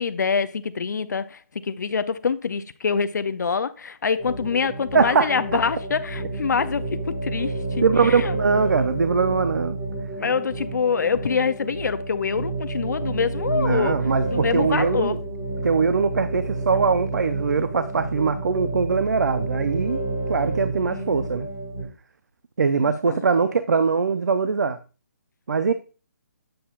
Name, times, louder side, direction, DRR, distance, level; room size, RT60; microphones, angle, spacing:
voice 1, 0.0-8.3 10.2-14.0 14.3-15.2 20.9-21.2 22.8-23.2, left 5 dB, 80° left, 0.4 m, -25 dB
sound 1, 4.2-21.8, right 2 dB, 5° right, 1.7 m, -30 dB
voice 2, 4.9-5.3 7.8-9.8 13.5-15.2 15.6-20.0 20.3-21.5 22.6-24.8 25.5-25.7, right 5 dB, 75° right, 0.5 m, -22 dB
7.7 x 6.9 x 2.3 m
hypercardioid pair, 180°, 9 cm